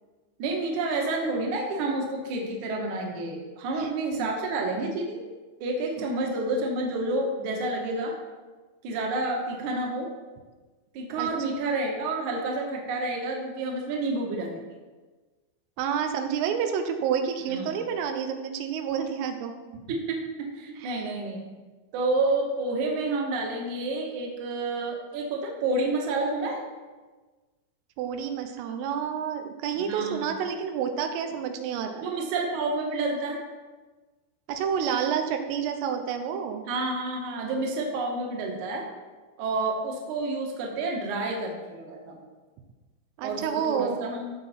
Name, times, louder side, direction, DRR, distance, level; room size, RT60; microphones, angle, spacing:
voice 1, 0.4-5.2 5.6-8.1 8.8-10.1 10.9-14.6 17.4-17.7 19.9-21.4 21.9-26.6 29.7-30.3 32.0-33.4 36.7-38.9 39.4-42.3 43.2-44.3, right 2 dB, 55° right, 0 dB, 2.3 m, -29 dB
voice 2, 15.8-19.5 20.8-21.1 28.0-32.1 34.5-36.7 43.2-44.1, right 7 dB, 90° right, 5 dB, 3.6 m, -29 dB
16.5 x 6.4 x 4.5 m, 1.3 s
omnidirectional pair, 5.7 m